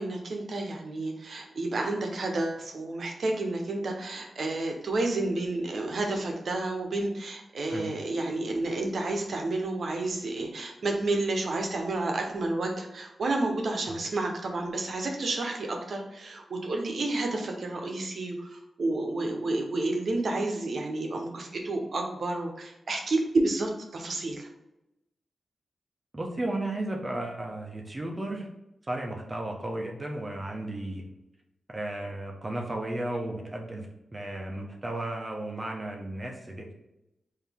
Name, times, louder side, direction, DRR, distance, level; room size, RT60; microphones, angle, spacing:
voice 1, 0.0-24.5, right 2 dB, 70° right, 2 dB, 0.8 m, -30 dB
voice 2, 26.1-28.5 28.9-31.1 31.7-33.9 34.1-36.7, right 1 dB, 30° right, 0 dB, 0.7 m, -34 dB
4.0 x 2.7 x 3.5 m, 0.91 s
cardioid pair, 65°, 0 cm